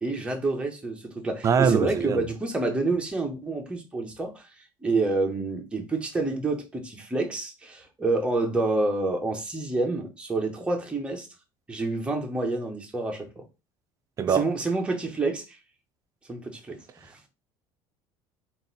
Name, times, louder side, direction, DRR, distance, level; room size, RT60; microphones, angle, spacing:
voice 1, 0.0-4.5 4.8-11.3 11.7-13.4 14.3-15.6 16.3-16.8 17.1-17.2, right 3 dB, 10° right, 0.8 m, -28 dB
voice 2, 1.4-2.2 14.2-14.5, right 6 dB, 25° right, 0.4 m, -22 dB
3.7 x 2.5 x 3.9 m
cardioid pair, 150°, 12 cm